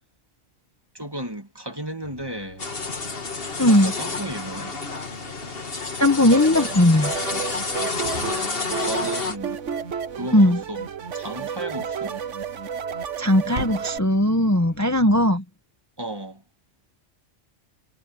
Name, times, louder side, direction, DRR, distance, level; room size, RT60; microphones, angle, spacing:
voice 1, 0.9-2.7 3.7-4.8 8.1-9.6 10.1-10.9 11.1-12.2 16.0-16.4, right 1 dB, 20° right, 1.8 m, -34 dB
sound 1, 2.0-15.2, right 1 dB, 65° right, 5.9 m, -43 dB
sound 2, 2.6-9.4, left 4 dB, 50° left, 1.9 m, -30 dB
voice 2, 3.6-3.9 6.0-7.2 10.3-10.6 13.2-15.4, left 1 dB, 15° left, 1.1 m, -18 dB
sound 3, 6.3-14.0, right 7 dB, 80° right, 1.4 m, -32 dB
omnidirectional pair, 1.3 m